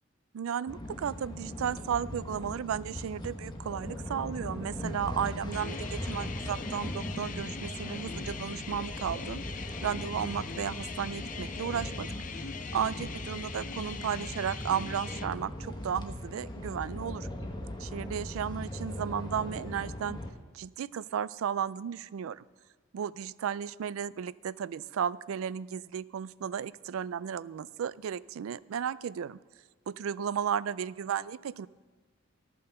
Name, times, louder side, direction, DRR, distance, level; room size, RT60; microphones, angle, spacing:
voice 1, 0.3-9.4 9.8-12.4 12.7-17.3 17.8-20.2 20.5-22.4 22.9-29.4 29.9-31.7, right 8 dB, 85° right, 19 dB, 0.3 m, -34 dB
sound 1, 0.7-20.3, left 1 dB, 20° left, 1.1 m, -39 dB
sound 2, 5.5-15.3, left 5 dB, 40° left, 0.6 m, -42 dB
13.0 x 9.1 x 6.6 m, 1.3 s
head